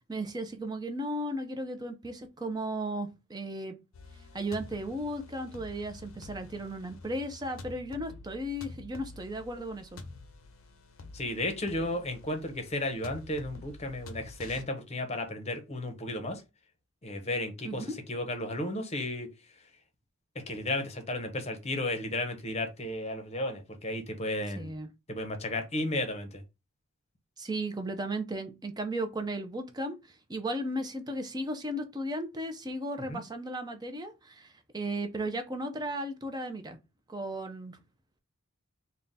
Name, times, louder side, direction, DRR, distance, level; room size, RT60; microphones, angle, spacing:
voice 1, 0.1-3.7 4.3-10.0 17.6-18.0 24.6-24.9 27.4-36.8 37.1-37.8, right 1 dB, 20° right, 0.5 m, -35 dB
sound 1, 3.9-14.6, left 2 dB, 70° left, 0.6 m, -48 dB
voice 2, 11.1-16.4 17.0-19.3 20.3-24.7 25.1-26.4 33.1-33.2, left 1 dB, 30° left, 0.8 m, -34 dB
3.7 x 2.2 x 4.0 m
head